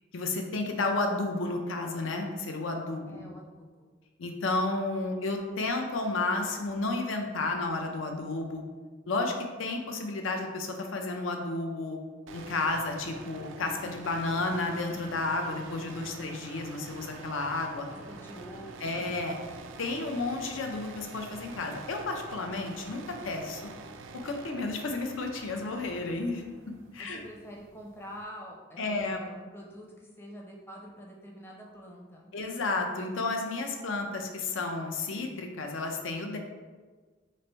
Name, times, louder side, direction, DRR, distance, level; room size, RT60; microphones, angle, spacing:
voice 1, 0.1-3.3 4.2-8.6 9.1-12.0 12.3-17.9 18.8-19.4 19.8-23.6 24.1-26.4 26.9-27.2 28.8-29.2 32.3-36.4, left 3 dB, 90° left, 3 dB, 0.5 m, -32 dB
voice 2, 3.1-3.9 17.9-19.0 27.0-32.3, equal, 10° left, -2 dB, 0.5 m, -46 dB
sound 1, 12.3-28.2, right 4 dB, 80° right, 0.3 m, -46 dB
3.2 x 2.5 x 4.4 m, 1.4 s
head